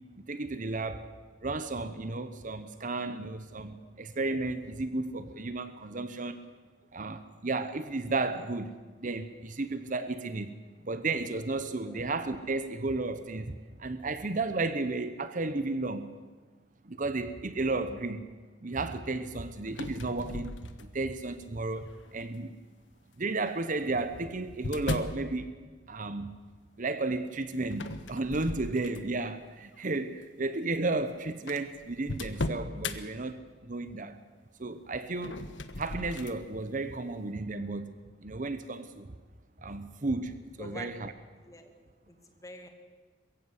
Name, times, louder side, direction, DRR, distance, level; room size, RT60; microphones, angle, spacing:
voice 1, 0.3-1.0 1.4-6.4 6.9-8.7 9.0-10.5 10.8-13.5 13.8-16.1 16.8-18.2 18.6-20.5 20.9-22.5 23.2-25.5 25.9-26.4 26.8-34.2 34.6-35.5 35.8-37.9 38.2-39.1 39.6-41.1, right 3 dB, 45° right, 11 dB, 0.9 m, -33 dB
sound 1, 19.7-21.1 21.8-22.2 23.3-25.2 27.7-29.3 29.7-30.0 30.8-30.9 31.0-31.1 31.5-33.0 35.1-36.4, left 2 dB, 80° left, 1.3 m, -37 dB
voice 2, 42.1-42.7, left 1 dB, 20° left, 5 dB, 2.2 m, -47 dB
22.0 x 15.5 x 8.2 m, 1.3 s
head